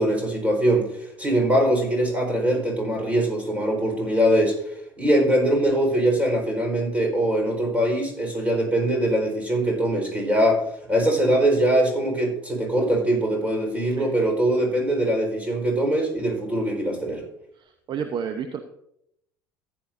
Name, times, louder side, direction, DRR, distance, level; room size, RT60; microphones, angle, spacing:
voice 1, 0.0-4.6 5.0-10.6 10.9-17.2, right 1 dB, 10° right, 2 dB, 4.4 m, -22 dB
voice 2, 17.6-18.6, right 7 dB, 40° right, 7 dB, 0.8 m, -31 dB
14.5 x 9.6 x 2.6 m, 0.75 s
figure-of-eight pair, 65°, 12 cm